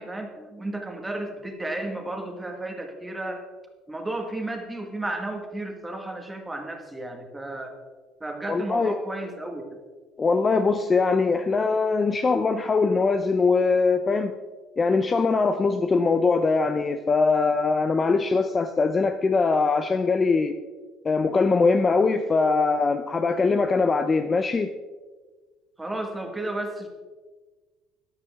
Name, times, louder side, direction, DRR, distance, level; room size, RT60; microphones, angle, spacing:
voice 1, 0.0-3.4 3.9-7.7 8.2-9.7 25.8-26.9, right 2 dB, 10° right, 4 dB, 1.6 m, -33 dB
voice 2, 8.5-9.0 10.2-14.4 14.8-20.5 21.0-24.7, left 4 dB, 20° left, 8 dB, 0.5 m, -22 dB
13.0 x 11.5 x 3.6 m, 1.4 s
cardioid pair, 150°, 0 cm